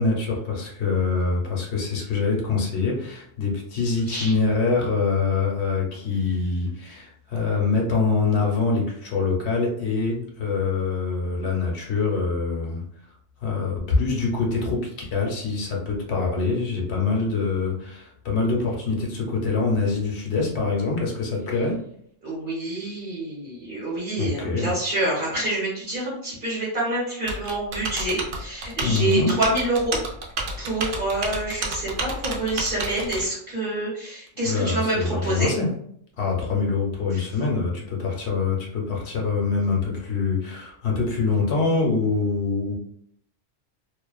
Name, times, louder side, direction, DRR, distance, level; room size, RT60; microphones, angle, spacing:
voice 1, 0.0-12.8 13.4-21.8 24.2-24.7 28.8-29.4 34.4-35.7 36.2-42.8, left 4 dB, 70° left, -1 dB, 0.9 m, -24 dB
voice 2, 22.2-30.0 30.6-35.5 37.1-37.2, right 2 dB, 50° right, -6 dB, 1.1 m, -27 dB
Typing, 27.3-33.3, right 3 dB, 85° right, 0.9 m, -31 dB
2.5 x 2.2 x 2.3 m, 0.67 s
omnidirectional pair, 1.2 m